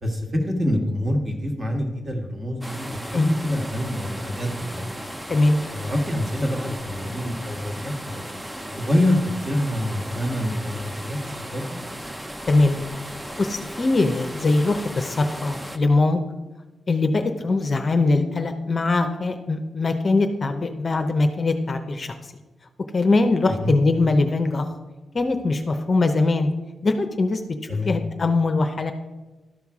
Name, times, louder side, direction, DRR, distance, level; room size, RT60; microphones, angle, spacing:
voice 1, 0.0-5.0 5.7-8.2 8.7-11.8 23.5-23.7 27.7-28.0, left 1 dB, 30° right, 3 dB, 1.5 m, -26 dB
sound 1, 2.6-15.8, equal, 10° right, 0.5 m, -36 dB
voice 2, 12.5-12.8 13.1-16.2 16.9-22.1 22.9-24.7 25.1-26.5 26.8-27.4 27.9-28.9, left 3 dB, 35° left, 6 dB, 0.7 m, -21 dB
12.0 x 5.7 x 4.8 m, 1.2 s
wide cardioid pair, 125°, 0 cm